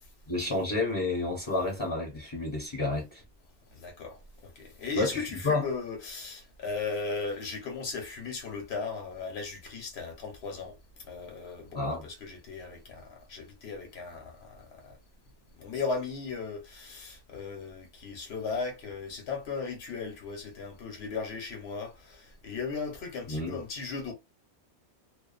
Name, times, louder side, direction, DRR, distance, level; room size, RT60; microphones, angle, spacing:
voice 1, 0.3-3.2 5.0-5.6 11.7-12.0 23.3-23.6, left 2 dB, 25° left, 0.8 m, -30 dB
voice 2, 3.7-15.0 15.6-24.1, left 4 dB, 60° left, 1.1 m, -37 dB
2.5 x 2.3 x 2.4 m
omnidirectional pair, 1.2 m